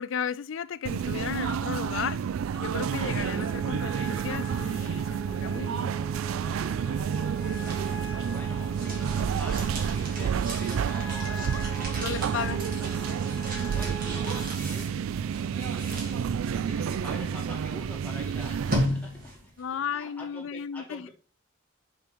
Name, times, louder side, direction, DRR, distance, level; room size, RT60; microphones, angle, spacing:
voice 1, 0.0-2.3 2.6-6.0 12.0-12.6 19.6-21.1, left 7 dB, 65° left, 0.4 m, -34 dB
sound 1, 0.9-18.9, right 7 dB, 75° right, 0.3 m, -30 dB
voice 2, 2.5-2.8 7.8-13.1 13.7-15.0 15.5-19.5 19.9-21.1, left 1 dB, 10° left, 2.2 m, -46 dB
sound 2, 2.8-14.4, right 4 dB, 15° right, 2.3 m, -42 dB
sound 3, 7.1-19.6, equal, 45° right, 2.5 m, -37 dB
5.8 x 4.8 x 5.3 m
head